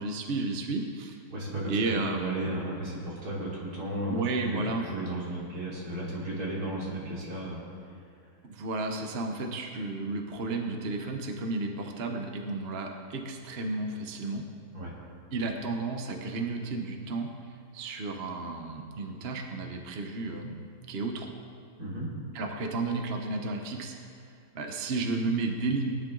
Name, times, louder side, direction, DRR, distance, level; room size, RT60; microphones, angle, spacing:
voice 1, 0.0-1.2 1.7-2.5 4.1-4.8 8.5-14.5 15.3-21.3 22.3-24.1 24.5-25.9, right 3 dB, 45° right, 3 dB, 1.2 m, -32 dB
voice 2, 1.3-4.2 4.5-8.3 14.7-14.9 21.8-22.1, right 1 dB, 90° right, -6 dB, 3.6 m, -35 dB
18.5 x 10.5 x 3.9 m, 2.2 s
omnidirectional pair, 1.6 m